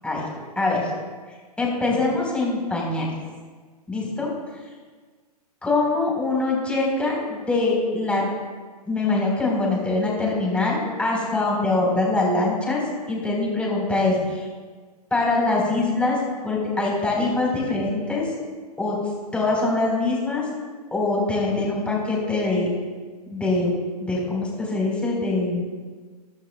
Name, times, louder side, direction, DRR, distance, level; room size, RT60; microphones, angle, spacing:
voice 1, 0.6-0.9 1.6-3.1 3.9-4.3 5.6-8.2 8.9-12.8 13.1-14.5 15.1-16.2 16.4-18.3 18.8-19.0 19.3-20.5 20.9-22.7 23.3-23.7 24.0-25.6, left 2 dB, 5° left, -3 dB, 3.9 m, -23 dB
21.5 x 11.0 x 2.2 m, 1.5 s
hypercardioid pair, 135°, 20 cm